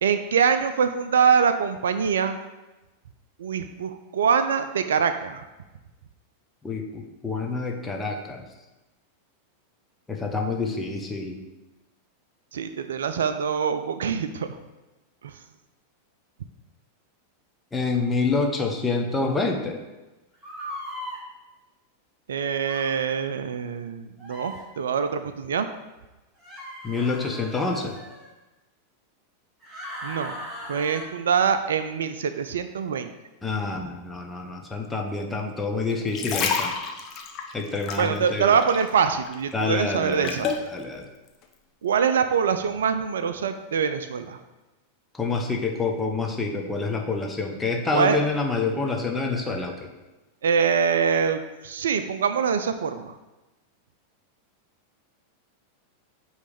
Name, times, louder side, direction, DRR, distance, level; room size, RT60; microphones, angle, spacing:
voice 1, 0.0-2.4 3.4-5.4 12.5-14.6 15.2-15.4 22.3-25.7 30.0-30.3 30.7-33.1 38.0-40.5 41.8-44.4 47.9-48.2 48.8-48.9 50.4-53.1, right 6 dB, 65° right, 9 dB, 0.4 m, -24 dB
voice 2, 6.6-8.4 10.1-11.4 17.7-19.8 26.8-27.9 33.4-36.7 37.5-38.5 39.5-41.0 45.1-49.9, left 3 dB, 10° left, 2 dB, 0.9 m, -27 dB
sound 1, 20.4-21.2 22.6-22.9 24.2-24.6 26.4-28.3 29.6-31.0, equal, 10° right, 2.3 m, -38 dB
sound 2, 35.9-39.0 39.3-40.7 41.3-41.4, left 6 dB, 35° left, 0.8 m, -29 dB
8.2 x 3.2 x 5.1 m, 1.1 s
figure-of-eight pair, 90°, 0 cm